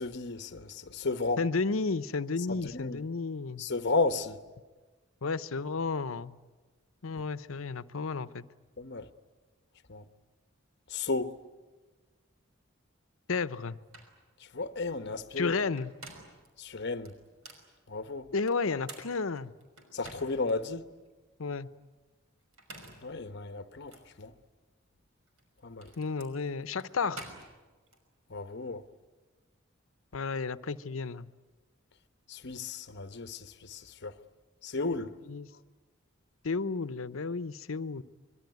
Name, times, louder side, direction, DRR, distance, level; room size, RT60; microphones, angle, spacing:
voice 1, 0.0-1.4 2.6-3.0 3.6-4.4 8.8-9.1 9.9-10.0 10.9-11.4 14.5-15.5 16.6-17.1 17.9-18.3 19.9-20.9 23.0-24.3 25.6-25.9 28.3-28.8 32.3-34.2 34.6-35.1, left 3 dB, 55° left, 1.1 m, -33 dB
voice 2, 1.4-3.7 5.2-6.4 7.0-8.4 13.3-13.8 15.4-15.9 18.3-19.5 21.4-21.7 26.0-27.3 30.1-31.3 35.3-35.5 36.4-38.0, left 4 dB, 80° left, 0.8 m, -32 dB
sound 1, 13.5-13.6 13.9-14.2 15.6-16.5 17.0-17.7 18.5-20.5 21.0-21.1 22.4-23.1 23.9-24.1 25.3-28.0, right 2 dB, 85° right, 5.7 m, -49 dB
25.0 x 22.5 x 9.4 m
head